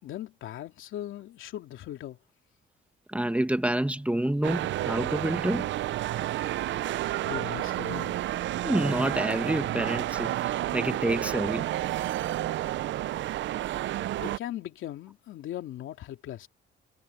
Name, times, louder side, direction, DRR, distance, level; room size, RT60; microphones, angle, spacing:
voice 1, 0.0-2.2 7.1-8.2 14.2-16.5, left 12 dB, 80° left, 2.8 m, -39 dB
voice 2, 3.1-5.7 8.6-11.7, right 1 dB, 5° right, 1.6 m, -28 dB
sound 1, 4.4-14.4, right 14 dB, 70° right, 0.5 m, -30 dB
cardioid pair, 90°, 20 cm